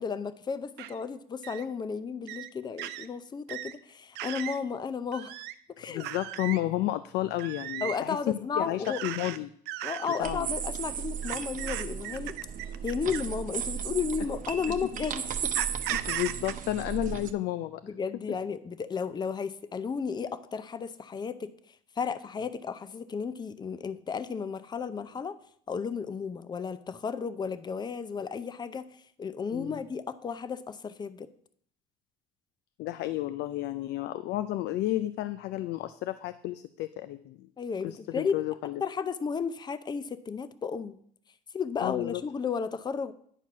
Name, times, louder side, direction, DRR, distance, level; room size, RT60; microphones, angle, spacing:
voice 1, 0.0-5.3 5.7-6.1 7.8-9.0 9.8-12.3 12.8-15.2 17.8-21.5 22.0-25.4 25.7-28.8 29.2-31.3 37.6-38.4 38.8-41.0 41.5-43.1, left 6 dB, 25° left, 13 dB, 0.5 m, -33 dB
sound 1, 0.8-0.9 1.4-1.6 2.3-2.5 2.8-3.1 3.5-3.7 4.2-4.6 5.1-5.5 6.0-6.6 7.4-8.0 8.8-9.4 9.7-10.2 11.2-13.3 14.2-14.4 15.5-16.5, right 14 dB, 90° right, 0.5 m, -37 dB
voice 2, 5.9-9.5 10.2-10.5 15.9-17.8 29.5-29.8 32.8-37.5 37.8-38.8 41.8-42.2, left 15 dB, 80° left, 12 dB, 0.4 m, -32 dB
sound 2, 10.2-17.3, right 8 dB, 50° right, 0.8 m, -35 dB
9.9 x 4.5 x 6.0 m, 0.63 s
cardioid pair, 110°, 17 cm